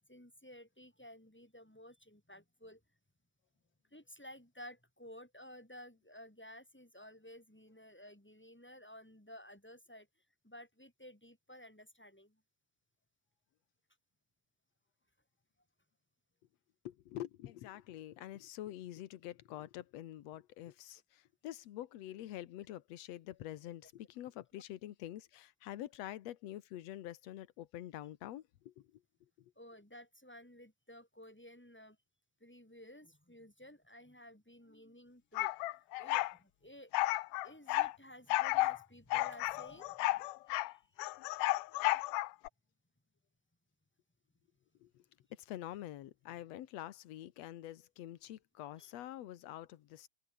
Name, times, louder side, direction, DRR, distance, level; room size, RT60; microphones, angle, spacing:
voice 1, 0.0-2.8 3.9-10.1 10.4-12.4 24.5-24.6 29.6-32.0 32.4-36.9 37.4-40.0 40.5-41.0 48.8-48.9, equal, 5° left, 1.9 m, -55 dB
voice 2, 16.8-29.0 29.4-29.5 44.8-45.0 45.3-50.1, left 13 dB, 65° left, 2.0 m, -46 dB
sound 1, 35.3-36.3 36.9-37.9 38.3-38.8 39.1-40.7 41.0-42.5, left 18 dB, 85° left, 2.3 m, -33 dB
omnidirectional pair, 3.7 m